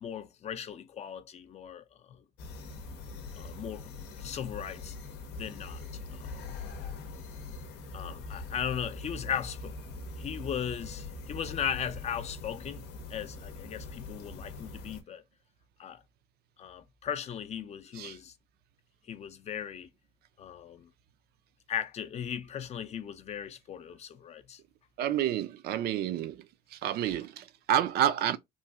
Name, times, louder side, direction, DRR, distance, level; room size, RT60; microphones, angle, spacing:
voice 1, 0.0-2.2 3.4-3.9 4.2-5.0 5.3-5.8 6.1-6.4 7.9-9.8 10.2-15.2 15.8-16.0 16.6-18.3 19.1-19.9 20.4-20.9 21.7-24.6, left 8 dB, 40° left, 0.4 m, -37 dB
sound 1, 2.4-15.0, left 3 dB, 85° left, 0.7 m, -42 dB
voice 2, 25.0-26.5 26.7-28.4, right 11 dB, 70° right, 0.4 m, -29 dB
3.1 x 2.6 x 2.3 m
cardioid pair, 110°, 17 cm